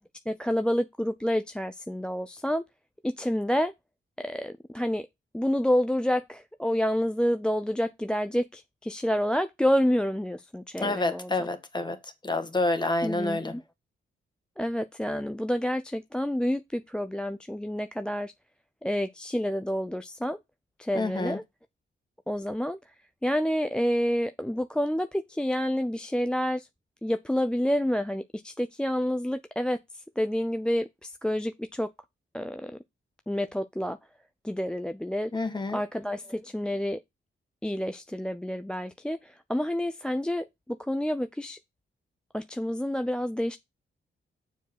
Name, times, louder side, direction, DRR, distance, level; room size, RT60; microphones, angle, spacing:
voice 1, 0.3-2.6 3.0-3.7 4.2-5.1 5.3-11.5 13.0-13.6 14.6-18.3 18.8-20.4 20.8-21.4 22.3-22.8 23.2-26.7 27.0-29.8 30.2-31.9 32.3-32.8 33.3-34.0 34.4-35.3 35.7-37.0 37.6-41.6 42.3-43.6, equal, 5° left, 0.4 m, -28 dB
voice 2, 10.8-13.6 20.9-21.4 35.3-35.8, left 2 dB, 20° left, 1.5 m, -28 dB
7.0 x 4.8 x 6.0 m
cardioid pair, 100°, 20 cm